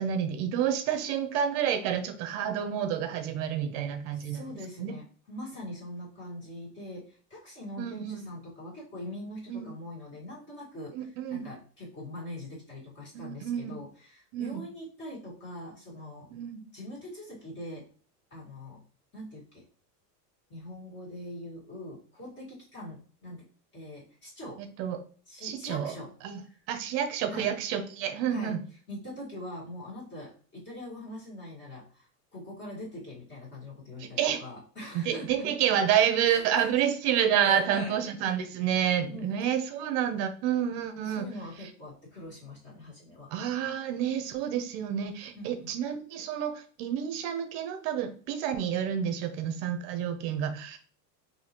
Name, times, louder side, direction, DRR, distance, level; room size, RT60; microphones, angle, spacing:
voice 1, 0.0-4.4 4.8-4.9 7.8-8.2 9.5-9.7 10.9-11.5 13.1-13.8 14.3-14.6 16.3-16.6 24.6-25.0 25.4-25.9 26.2-26.4 26.7-28.6 34.0-34.4 34.9-41.3 41.6-41.7 43.3-50.8, right 9 dB, 45° right, 8 dB, 0.7 m, -29 dB
voice 2, 4.1-16.3 16.7-17.9 18.3-18.8 19.1-19.7 20.5-23.5 23.7-24.6 25.3-26.1 26.4-26.6 27.3-27.5 28.3-28.6 28.9-35.5 36.3-36.9 37.4-38.0 39.1-39.3 41.0-43.3 45.3-45.7, left 1 dB, 25° left, -5 dB, 1.7 m, -43 dB
4.0 x 2.8 x 2.9 m, 0.42 s
supercardioid pair, 140°, 47 cm